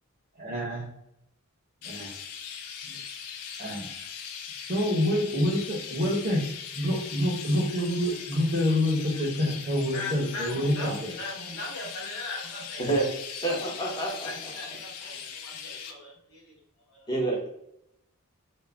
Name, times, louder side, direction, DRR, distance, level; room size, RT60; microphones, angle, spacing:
voice 1, 0.4-0.9 1.8-2.1 2.8-3.0 3.6-3.9 4.7-6.4 6.7-11.1, left 1 dB, 35° right, -3 dB, 0.6 m, -27 dB
Chirp tweet, 1.8-15.9, left 7 dB, 85° left, 0.4 m, -40 dB
voice 2, 9.9-12.9 14.0-16.6 16.9-17.1, left 2 dB, 70° left, -3 dB, 1.1 m, -39 dB
voice 3, 13.4-14.5 17.1-17.5, right 2 dB, 20° left, -2 dB, 0.7 m, -28 dB
2.4 x 2.1 x 3.2 m, 0.78 s
head